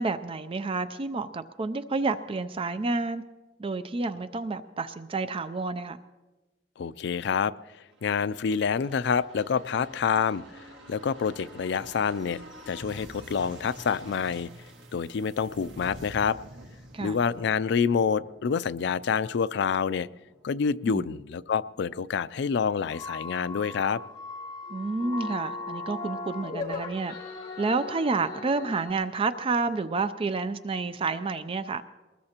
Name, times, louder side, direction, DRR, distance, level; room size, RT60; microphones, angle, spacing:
voice 1, 0.0-3.2 3.6-6.0 16.9-17.2 20.9-21.1 24.7-27.1 27.6-31.8, right 3 dB, 30° right, 11 dB, 0.4 m, -29 dB
voice 2, 6.8-7.5 8.0-14.5 14.9-16.4 17.0-20.1 20.4-24.0, left 6 dB, 70° left, 16 dB, 0.4 m, -27 dB
sound 1, 7.8-21.3 21.6-21.7, right 1 dB, 80° right, 1.7 m, -49 dB
sound 2, 22.9-28.9, left 3 dB, 35° left, 2.6 m, -38 dB
23.0 x 20.0 x 2.9 m, 1.2 s
head